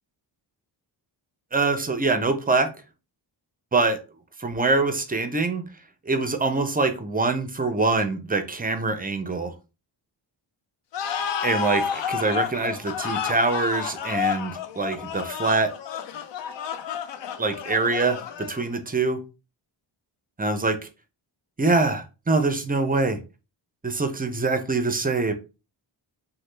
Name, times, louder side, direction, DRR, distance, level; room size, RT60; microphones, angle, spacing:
voice 1, 1.5-2.7 3.7-4.0 4.4-5.6 6.1-9.5 11.4-15.7 17.4-19.2 20.4-20.8 21.6-23.2 23.8-25.3, right 3 dB, 20° right, 0.4 m, -24 dB
sound 1, 10.9-18.8, left 7 dB, 70° left, 0.5 m, -30 dB
3.1 x 2.1 x 3.1 m
cardioid pair, 85°, 46 cm